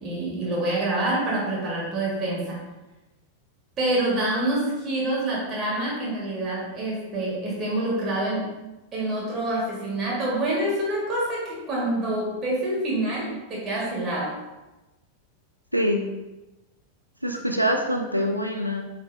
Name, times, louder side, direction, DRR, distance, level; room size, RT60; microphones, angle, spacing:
voice 1, 0.0-2.6 3.8-8.5 8.9-14.4, right 1 dB, 30° right, -4 dB, 1.5 m, -26 dB
voice 2, 15.7-16.0 17.2-18.8, equal, 90° right, 3 dB, 0.4 m, -24 dB
4.6 x 4.2 x 2.5 m, 1.1 s
figure-of-eight pair, 90°, 0 cm